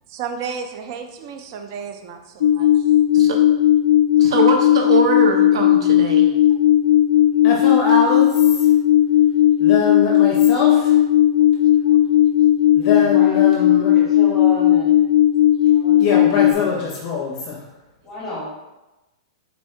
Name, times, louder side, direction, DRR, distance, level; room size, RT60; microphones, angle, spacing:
voice 1, 0.1-2.8 11.9-12.0, right 6 dB, 30° right, 5 dB, 0.3 m, -33 dB
sound 1, 2.4-16.5, left 12 dB, 60° left, 0.3 m, -15 dB
voice 2, 4.2-6.3, right 4 dB, 65° right, 2 dB, 0.7 m, -22 dB
voice 3, 7.4-8.7 9.6-11.0 12.7-13.9 16.0-17.6, left 4 dB, 25° left, -2 dB, 0.7 m, -23 dB
voice 4, 12.7-15.0 15.7-16.6 18.0-18.5, left 1 dB, ahead, -12 dB, 1.5 m, -33 dB
4.2 x 2.7 x 4.3 m, 1.0 s
supercardioid pair, 180°, 3 cm